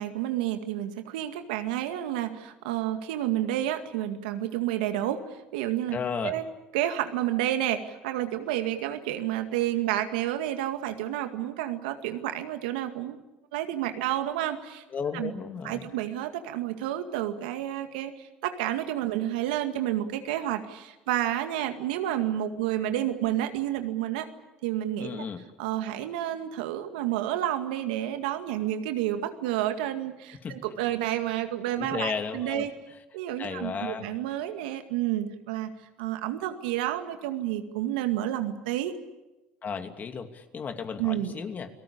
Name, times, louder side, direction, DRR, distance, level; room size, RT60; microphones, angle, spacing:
voice 1, 0.0-5.2 5.5-6.0 6.2-6.4 6.7-13.2 13.5-14.8 15.1-15.3 15.6-24.3 24.6-25.2 25.6-32.7 33.1-35.7 36.0-38.9 41.0-41.3, right 12 dB, 85° right, 7 dB, 2.1 m, -30 dB
voice 2, 5.9-6.3 14.9-15.9 25.0-25.4 30.4-30.5 31.8-32.7 33.4-34.1 39.6-41.7, left 6 dB, 40° left, 7 dB, 2.8 m, -34 dB
29.5 x 18.5 x 8.7 m, 1.0 s
supercardioid pair, 80°, 4 cm